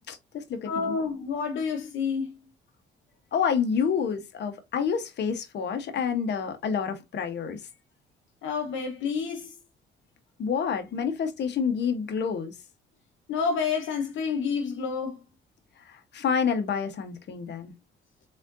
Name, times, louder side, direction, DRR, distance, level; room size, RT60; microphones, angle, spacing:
voice 1, 0.0-0.9 3.3-7.6 10.4-12.5 15.9-17.7, left 6 dB, 60° left, 1.1 m, -28 dB
voice 2, 0.7-2.3 8.4-9.5 13.3-15.2, left 5 dB, 75° left, 0.9 m, -29 dB
4.2 x 3.8 x 2.5 m
cardioid pair, 90°, 20 cm